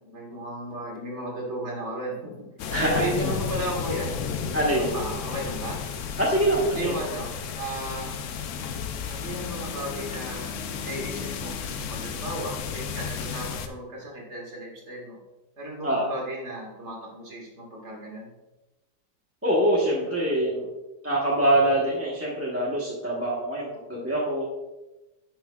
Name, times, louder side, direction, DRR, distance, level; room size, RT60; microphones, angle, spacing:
voice 1, 0.0-2.5 2.8-4.1 4.7-5.8 6.7-8.1 9.1-10.5 10.8-15.2 15.6-18.3, right 1 dB, 45° right, -2 dB, 2.1 m, -34 dB
sound 1, 2.6-13.7, left 6 dB, 65° left, 0.8 m, -33 dB
voice 2, 2.7-3.0 4.5-4.9 6.2-6.9 15.8-16.1 19.4-20.7 21.0-24.5, right 1 dB, 10° right, -5 dB, 0.9 m, -24 dB
sound 2, 9.2-14.1, left 3 dB, 65° right, 3.0 m, -44 dB
9.8 x 5.9 x 2.3 m, 1.0 s
omnidirectional pair, 1.7 m